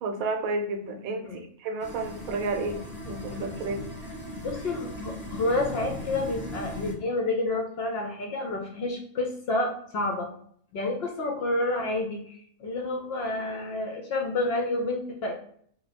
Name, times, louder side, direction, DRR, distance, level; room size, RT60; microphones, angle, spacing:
voice 1, 0.0-2.8 3.0-3.8, right 3 dB, 75° right, 4 dB, 1.0 m, -31 dB
sound 1, 1.8-6.9, left 1 dB, 15° left, 0.5 m, -38 dB
voice 2, 4.3-10.3 10.7-15.3, left 2 dB, 65° left, 1 dB, 0.6 m, -29 dB
2.6 x 2.2 x 4.0 m, 0.62 s
omnidirectional pair, 1.5 m